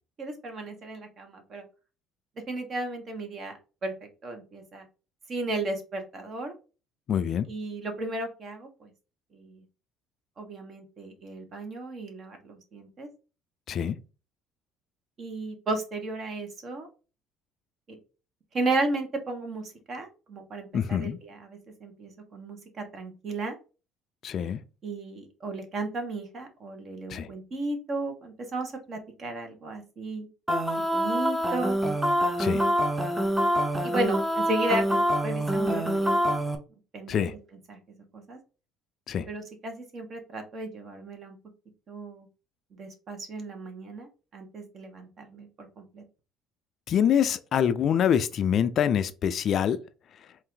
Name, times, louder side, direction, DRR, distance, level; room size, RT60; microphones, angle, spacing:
voice 1, 0.2-1.6 2.5-3.9 4.2-4.8 5.3-6.5 7.5-8.9 9.3-9.6 10.4-13.1 15.2-16.9 17.9-18.0 18.5-23.5 24.8-30.3 30.9-31.8 33.1-33.4 33.8-36.4 36.9-37.3 37.7-37.8 38.1-38.4 39.3-41.4 41.9-42.3 42.8-46.0, right 2 dB, 45° right, 1.3 m, -34 dB
voice 2, 7.1-7.5 13.7-14.0 20.7-21.2 24.2-24.6 27.1-27.3 32.4-32.6 37.1-37.3 39.1-39.3 46.9-49.8, left 8 dB, 50° left, 0.4 m, -25 dB
sound 1, 30.5-36.6, equal, 15° right, 0.8 m, -25 dB
4.1 x 2.6 x 3.7 m
supercardioid pair, 95°, 0 cm